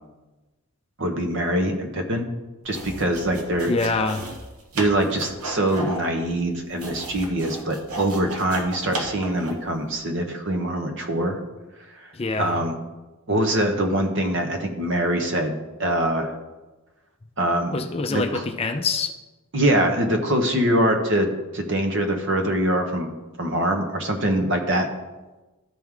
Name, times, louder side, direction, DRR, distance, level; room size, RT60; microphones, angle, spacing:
voice 1, 1.0-2.2 2.6-3.7 4.7-11.4 12.4-12.7 13.3-16.3 17.4-17.7 18.1-18.4 19.5-23.1 23.4-24.9, right 1 dB, 55° right, 5 dB, 0.9 m, -23 dB
sound 1, 2.6-9.7, right 2 dB, 80° right, 1.1 m, -35 dB
voice 2, 3.7-4.2 12.1-12.6 17.7-19.1, left 3 dB, 25° left, 6 dB, 0.4 m, -25 dB
12.5 x 4.6 x 3.7 m, 1.1 s
head